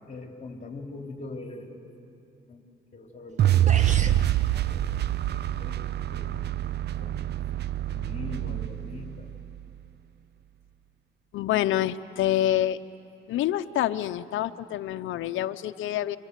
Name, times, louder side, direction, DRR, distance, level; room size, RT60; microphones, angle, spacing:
voice 1, 0.1-1.8 2.5-2.6 2.9-4.3 4.6-6.5 6.8-7.3 7.9-9.3, left 3 dB, 35° left, 2 dB, 3.4 m, -42 dB
sound 1, 3.3-3.4 3.7-4.2, right 4 dB, 35° right, 1.5 m, -34 dB
sound 2, 3.4-9.6, right 12 dB, 60° right, 0.6 m, -26 dB
voice 2, 11.3-12.8 13.3-16.2, left 12 dB, 80° left, 9 dB, 0.7 m, -27 dB
28.0 x 25.0 x 8.3 m, 2.9 s
cardioid pair, 90°, 20 cm